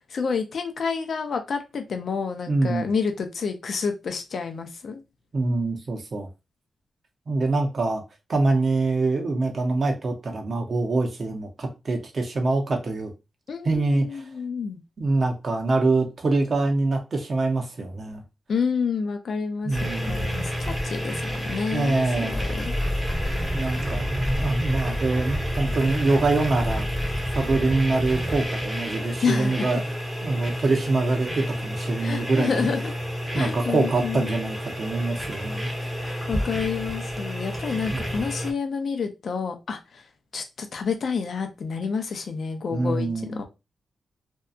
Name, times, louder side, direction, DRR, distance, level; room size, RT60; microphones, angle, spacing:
voice 1, 0.1-5.0 13.5-14.8 18.5-22.7 29.2-29.7 32.0-32.9 33.3-34.3 36.0-40.0 40.3-43.4, left 5 dB, 65° left, 0.5 m, -29 dB
voice 2, 2.5-2.9 5.3-6.3 7.3-8.0 8.3-13.1 13.6-14.2 15.0-18.2 19.6-20.3 21.7-22.4 23.5-26.9 27.3-29.8 30.2-32.6 33.3-35.9 37.9-38.1 42.7-43.4, right 3 dB, 50° right, 0.7 m, -25 dB
sound 1, 19.7-38.5, equal, 10° right, 0.8 m, -29 dB
2.7 x 2.3 x 2.3 m
cardioid pair, 85°, 0 cm